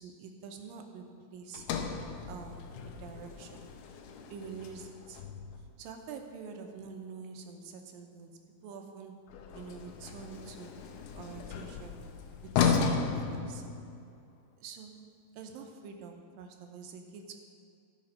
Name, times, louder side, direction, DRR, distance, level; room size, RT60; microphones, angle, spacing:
voice 1, 0.0-1.7 2.3-3.6 4.3-5.2 5.8-9.3 9.5-10.8 11.1-12.0 12.4-13.7 14.6-15.0 15.4-17.3, right 5 dB, 90° right, 4 dB, 2.5 m, -46 dB
Sliding door, 1.5-5.8 9.3-14.2, left 6 dB, 75° left, 1.9 m, -35 dB
14.0 x 5.2 x 5.4 m, 2.4 s
omnidirectional pair, 4.0 m